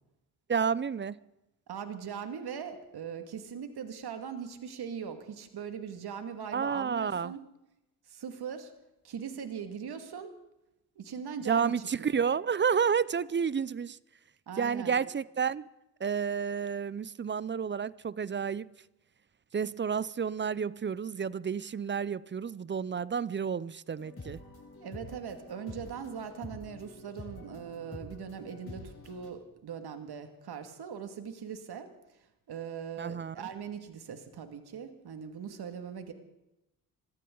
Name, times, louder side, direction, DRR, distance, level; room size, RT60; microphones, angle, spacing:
voice 1, 0.5-1.2 6.5-7.4 11.4-14.0 14.6-15.7 16.0-18.7 19.5-24.4 33.0-33.5, right 6 dB, 25° right, 0.6 m, -30 dB
voice 2, 1.7-7.4 8.1-8.7 9.0-10.4 11.0-11.7 12.0-12.1 14.5-14.9 24.8-31.9 32.5-36.1, right 7 dB, 60° right, 2.3 m, -40 dB
sound 1, 24.0-29.3, left 2 dB, 30° left, 7.4 m, -47 dB
25.0 x 14.5 x 3.9 m
supercardioid pair, 55°, 44 cm